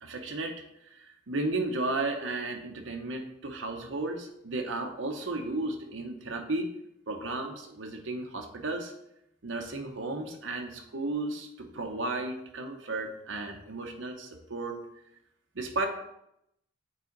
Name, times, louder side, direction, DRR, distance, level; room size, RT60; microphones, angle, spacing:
voice 1, 0.0-6.7 7.1-8.9 9.4-14.8 15.5-15.9, right 2 dB, 75° right, 3 dB, 0.8 m, -34 dB
8.5 x 4.1 x 3.9 m, 0.79 s
head